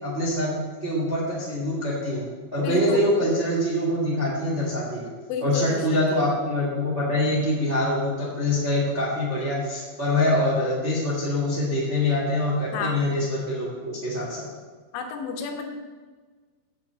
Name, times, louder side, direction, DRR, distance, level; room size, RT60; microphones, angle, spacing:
voice 1, 0.0-2.2 2.5-5.1 5.4-14.4, left 1 dB, 25° right, -5 dB, 1.6 m, -24 dB
voice 2, 2.6-3.1 5.3-6.0 12.7-13.0 14.9-15.7, left 6 dB, 80° left, 4 dB, 3.6 m, -31 dB
8.6 x 6.4 x 8.0 m, 1.4 s
omnidirectional pair, 5.7 m